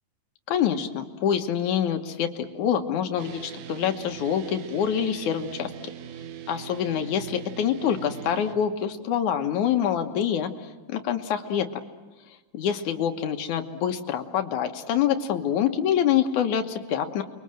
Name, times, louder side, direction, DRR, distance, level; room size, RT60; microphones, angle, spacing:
voice 1, 0.5-5.9 6.5-11.7 12.5-17.2, left 9 dB, 70° left, 6 dB, 2.6 m, -26 dB
sound 1, 3.2-8.6, right 9 dB, 75° right, 2.6 m, -40 dB
29.5 x 22.5 x 7.6 m, 1.2 s
omnidirectional pair, 3.7 m